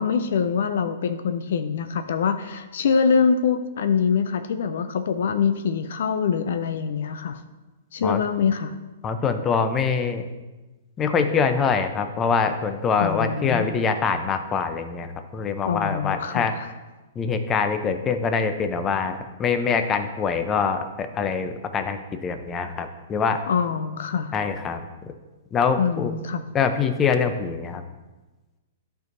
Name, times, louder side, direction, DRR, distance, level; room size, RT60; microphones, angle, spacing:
voice 1, 0.0-7.4 7.9-8.7 13.0-13.7 15.7-16.7 23.5-24.3 25.8-26.4, left 6 dB, 65° left, 10 dB, 0.4 m, -24 dB
voice 2, 9.0-10.2 11.0-16.5 17.2-23.4 24.3-24.8 25.5-26.1 26.5-27.8, left 5 dB, 25° left, 8 dB, 0.6 m, -24 dB
11.5 x 4.6 x 2.6 m, 1.2 s
hypercardioid pair, 120°, 0 cm